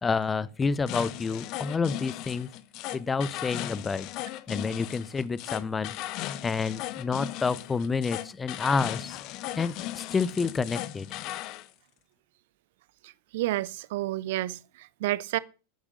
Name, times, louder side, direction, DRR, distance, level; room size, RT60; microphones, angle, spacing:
voice 1, 0.0-2.5 2.9-4.1 4.5-6.0 6.4-9.2 9.6-11.1, left 4 dB, 15° left, 1.0 m, -29 dB
sound 1, 0.9-11.7, left 14 dB, 40° left, 1.0 m, -37 dB
voice 2, 13.0-15.4, right 16 dB, 50° right, 0.8 m, -30 dB
14.0 x 10.0 x 6.5 m
figure-of-eight pair, 90°, 0 cm